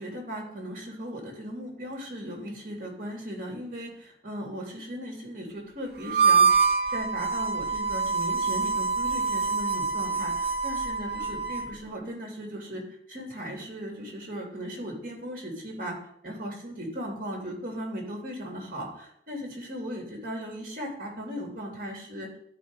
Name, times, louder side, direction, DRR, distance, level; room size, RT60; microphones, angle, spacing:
voice 1, 0.0-6.5 6.9-16.0 16.2-22.3, equal, 50° right, 0 dB, 2.8 m, -37 dB
Harmonica, 6.1-11.7, right 5 dB, 70° right, 1.4 m, -25 dB
12.0 x 4.9 x 4.8 m, 0.69 s
head